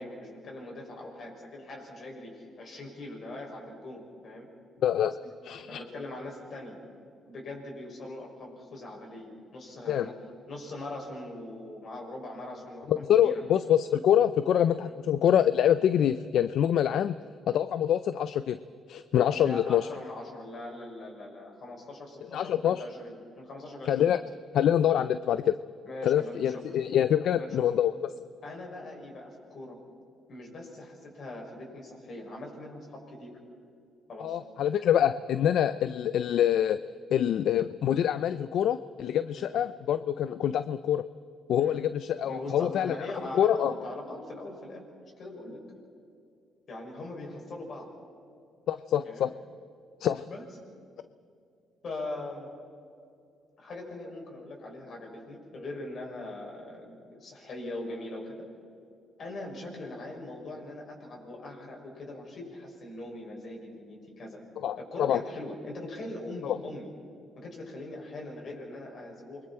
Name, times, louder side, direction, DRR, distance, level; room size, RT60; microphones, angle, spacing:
voice 1, 0.0-4.5 5.7-6.8 7.3-10.1 10.5-13.4 14.8-14.9 19.3-24.1 25.8-26.6 27.2-27.5 28.4-29.8 30.3-33.4 34.1-34.4 39.3-39.5 41.6-41.8 42.3-44.8 45.2-45.6 46.7-47.9 49.0-49.3 50.3-50.4 51.8-52.5 53.6-58.4 59.2-64.4 64.8-66.9 67.4-69.5, left 2 dB, 55° left, 0 dB, 6.6 m, -41 dB
voice 2, 4.8-5.2 5.4-5.8 9.9-10.1 12.9-17.2 17.5-18.6 18.9-19.9 22.3-22.8 23.9-24.2 24.5-25.6 26.0-28.1 34.2-36.8 37.1-41.0 41.5-43.1 43.3-43.7 48.7-49.3 50.0-50.3 64.6-65.2 66.4-66.6, left 10 dB, 75° left, 13 dB, 0.5 m, -25 dB
28.5 x 23.0 x 4.5 m, 2.6 s
cardioid pair, 90°, 0 cm